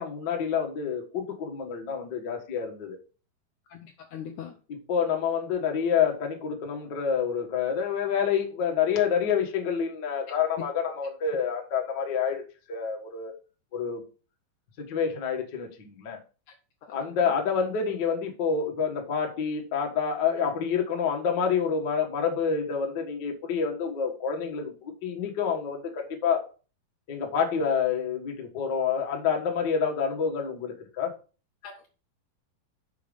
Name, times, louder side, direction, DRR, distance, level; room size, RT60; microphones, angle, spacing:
voice 1, 0.0-3.0 4.7-12.4 12.7-13.3 13.7-14.0 14.8-16.2 16.9-26.4 27.1-31.1, left 6 dB, 50° left, 1 dB, 1.4 m, -28 dB
voice 2, 3.7-4.5 31.6-31.9, left 8 dB, 75° left, 2 dB, 1.9 m, -41 dB
7.1 x 5.2 x 5.0 m, 0.35 s
omnidirectional pair, 4.2 m